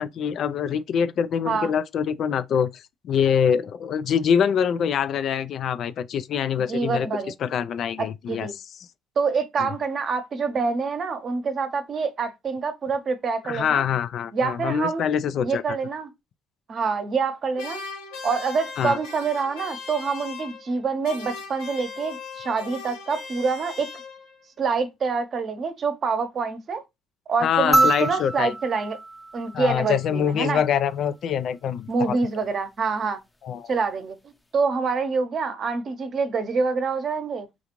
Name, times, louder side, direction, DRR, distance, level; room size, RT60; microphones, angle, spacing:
voice 1, 0.0-7.1 7.4-8.5 13.5-15.6 18.8-19.0 27.4-28.5 29.5-32.2 33.4-33.7, left 8 dB, 60° left, 0.3 m, -24 dB
voice 2, 6.7-7.3 8.0-8.5 9.2-13.8 14.3-15.1 15.4-16.1 16.7-17.8 18.2-23.9 24.6-26.8 27.3-29.0 29.3-30.6 31.9-33.2 33.7-34.2 34.5-37.5, right 4 dB, 50° right, 0.8 m, -26 dB
sound 1, 17.6-20.8 21.0-24.4, left 5 dB, 85° left, 1.1 m, -38 dB
sound 2, 27.7-30.3 31.9-32.0, right 2 dB, 15° left, 0.6 m, -25 dB
3.7 x 2.4 x 3.0 m
hypercardioid pair, 65°, 0 cm